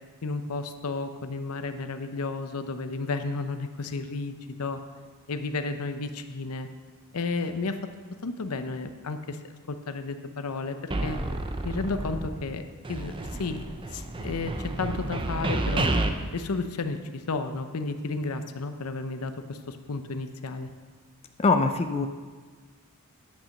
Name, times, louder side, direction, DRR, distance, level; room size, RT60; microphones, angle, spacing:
voice 1, 0.2-4.8 5.3-6.7 7.1-7.8 8.2-9.4 9.7-10.8 11.0-11.2 11.6-12.6 12.9-13.1 13.4-13.6 13.9-15.9 16.3-20.7, left 3 dB, 75° left, 8 dB, 0.7 m, -32 dB
sound 1, 10.9-12.6 12.8-16.1, right 2 dB, 25° right, 0.6 m, -30 dB
voice 2, 21.4-22.1, left 3 dB, 25° left, 7 dB, 0.4 m, -22 dB
10.0 x 5.9 x 6.5 m, 1.4 s
head